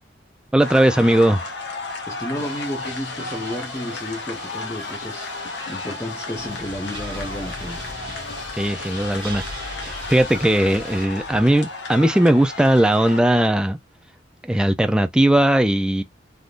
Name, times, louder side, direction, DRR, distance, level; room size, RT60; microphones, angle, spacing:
voice 1, 0.5-1.4 8.5-13.8 14.4-16.0, right 1 dB, 5° right, 0.3 m, -18 dB
sound 1, 0.6-13.2, left 3 dB, 65° left, 1.1 m, -34 dB
voice 2, 2.1-7.9, left 1 dB, 15° left, 0.8 m, -32 dB
sound 2, 2.3-11.1, left 3 dB, 90° left, 1.6 m, -39 dB
sound 3, 6.3-11.5, right 1 dB, 30° right, 1.1 m, -38 dB
3.5 x 2.6 x 2.4 m
head